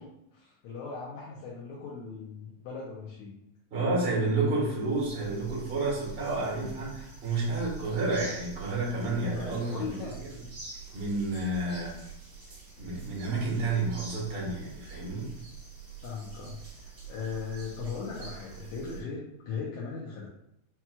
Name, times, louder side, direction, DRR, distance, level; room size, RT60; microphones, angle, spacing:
voice 1, 0.0-3.3 6.2-6.8 9.2-10.2 16.0-20.3, left 5 dB, 80° left, -5 dB, 2.0 m, -39 dB
voice 2, 3.7-9.8 10.9-12.0 12.8-15.3, right 2 dB, 65° right, -5 dB, 0.5 m, -30 dB
sound 1, 4.4-4.5 4.7-19.0, right 6 dB, 45° right, 2.3 m, -45 dB
5.7 x 2.9 x 2.2 m, 0.77 s
omnidirectional pair, 3.6 m